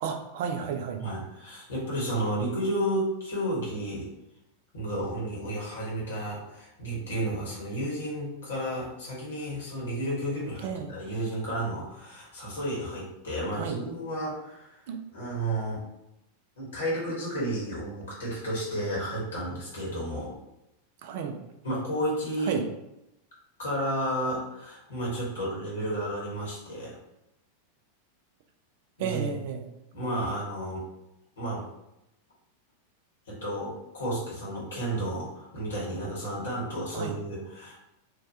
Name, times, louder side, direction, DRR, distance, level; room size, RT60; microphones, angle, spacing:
voice 1, 0.0-1.0 10.6-10.9 13.5-13.8 14.9-15.0 21.0-21.4 22.5-22.6 29.0-29.7 36.9-37.1, right 7 dB, 50° right, 5 dB, 0.4 m, -32 dB
voice 2, 1.0-4.1 4.7-14.8 15.1-15.8 16.6-20.3 21.6-22.6 23.6-27.0 29.0-29.4 29.9-30.8 31.4-31.7 33.3-37.8, right 1 dB, 65° left, -5 dB, 1.1 m, -32 dB
3.0 x 2.2 x 2.7 m, 0.88 s
figure-of-eight pair, 90°, 0 cm